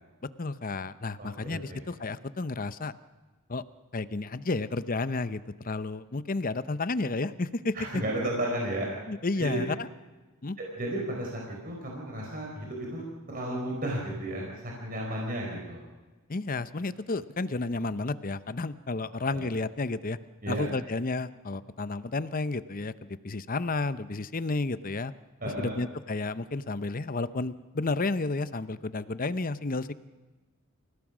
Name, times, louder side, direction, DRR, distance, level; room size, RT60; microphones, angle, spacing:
voice 1, 0.4-2.9 3.5-3.6 3.9-8.0 9.1-9.9 10.4-10.6 16.3-20.2 20.5-22.9 23.2-25.1 25.6-29.9, left 3 dB, 40° left, 14 dB, 0.8 m, -31 dB
voice 2, 1.2-1.8 7.7-8.9 9.4-9.6 10.6-15.8 19.3-19.4 20.4-20.7 25.4-25.8, right 1 dB, 40° right, -2 dB, 4.8 m, -33 dB
29.5 x 16.5 x 6.2 m, 1.2 s
head